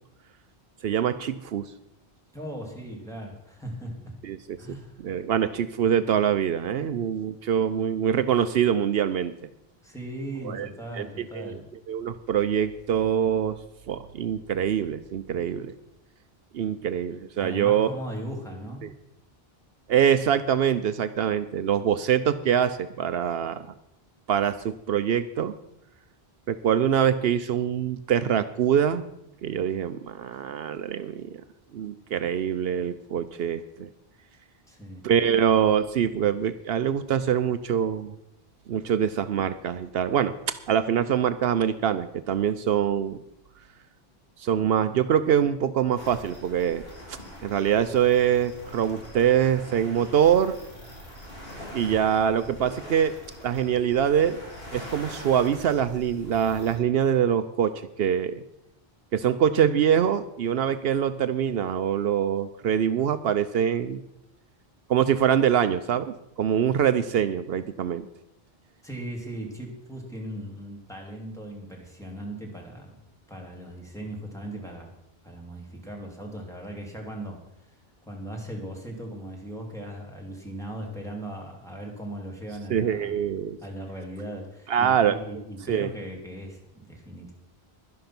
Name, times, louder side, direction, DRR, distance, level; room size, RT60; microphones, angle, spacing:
voice 1, 0.8-1.7 4.2-9.3 10.4-10.7 10.9-11.1 11.3-11.6 11.9-13.6 13.9-15.7 16.5-17.9 18.8-18.9 19.9-23.7 24.3-25.5 26.5-29.0 29.4-31.4 31.7-33.9 35.0-38.1 38.7-43.2 44.4-46.8 47.1-50.6 51.7-53.1 53.4-54.4 54.7-58.4 59.1-64.0 64.9-68.1 82.7-83.6 84.7-85.2 85.7-85.9, right 9 dB, 75° right, 12 dB, 0.8 m, -24 dB
voice 2, 2.3-4.1 4.6-5.2 9.8-11.6 17.4-18.9 23.4-23.7 34.7-35.1 68.8-73.0 73.3-74.9 75.2-77.4 78.1-83.1 83.6-87.3, right 1 dB, 5° left, -1 dB, 2.7 m, -38 dB
sound 1, 46.0-56.8, equal, 70° left, 3.4 m, -43 dB
11.5 x 10.5 x 5.9 m, 0.83 s
omnidirectional pair, 1.0 m